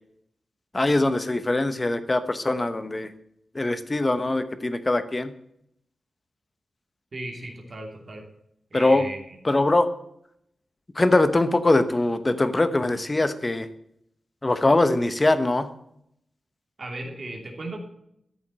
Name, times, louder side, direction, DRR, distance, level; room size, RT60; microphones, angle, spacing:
voice 1, 0.7-3.1 3.5-5.3 8.7-9.1 9.4-9.9 10.9-13.7 14.4-15.7, left 2 dB, 20° left, 11 dB, 1.0 m, -22 dB
voice 2, 7.1-8.2 8.7-9.4 16.8-17.8, right 2 dB, 35° right, 1 dB, 2.8 m, -36 dB
13.5 x 7.1 x 7.5 m, 0.74 s
wide cardioid pair, 175°, 0 cm